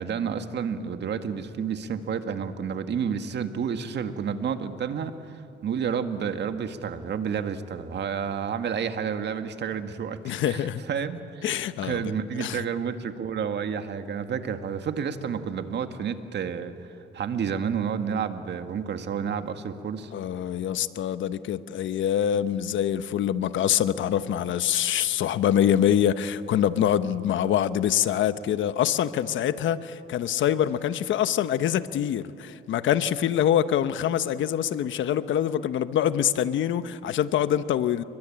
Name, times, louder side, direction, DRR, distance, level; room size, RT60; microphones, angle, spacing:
voice 1, 0.0-20.1, right 7 dB, 60° right, 8 dB, 1.8 m, -30 dB
voice 2, 10.2-10.8 11.4-12.1 12.4-12.6 20.1-38.0, left 10 dB, 75° left, 13 dB, 1.0 m, -25 dB
29.5 x 23.0 x 8.8 m, 2.9 s
cardioid pair, 90°, 20 cm